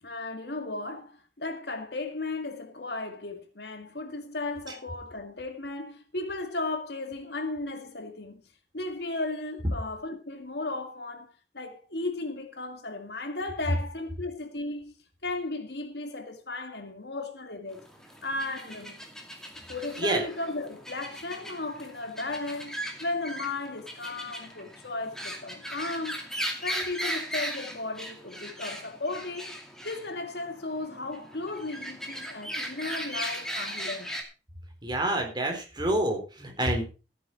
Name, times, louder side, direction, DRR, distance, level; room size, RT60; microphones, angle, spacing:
voice 1, 0.0-8.4 8.7-11.3 11.5-14.9 15.2-17.8 18.2-19.0 19.7-26.3 26.6-29.6 29.8-34.1, left 2 dB, 65° left, 2.1 m, -35 dB
sound 1, 17.7-34.2, equal, 5° left, 2.3 m, -38 dB
voice 2, 34.8-36.8, right 1 dB, 25° right, 3.9 m, -27 dB
14.5 x 9.6 x 4.0 m
head